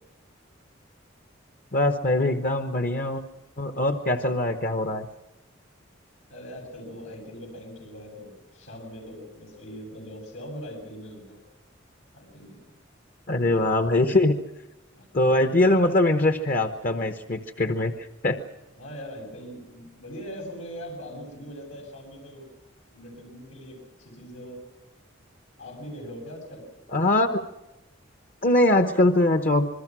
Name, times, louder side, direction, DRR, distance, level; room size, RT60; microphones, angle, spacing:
voice 1, 1.7-3.2 3.6-5.1 13.3-14.3 15.1-17.9 18.2-18.4 26.9-27.3 28.4-29.7, left 1 dB, 45° left, 8 dB, 1.0 m, -22 dB
voice 2, 6.3-11.4 12.1-12.6 14.9-15.1 18.8-22.5 22.9-24.6 25.6-26.7, equal, 85° left, 1 dB, 7.3 m, -41 dB
27.0 x 22.0 x 6.1 m, 0.99 s
head